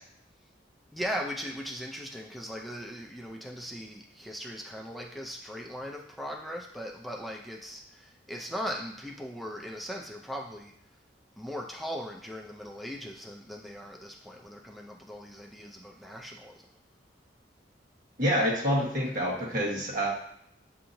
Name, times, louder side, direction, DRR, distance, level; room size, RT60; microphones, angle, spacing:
voice 1, 0.9-10.7 11.4-16.5, equal, ahead, 0 dB, 0.4 m, -39 dB
voice 2, 18.2-20.1, equal, 50° right, -4 dB, 1.4 m, -27 dB
6.8 x 2.8 x 2.6 m, 0.71 s
head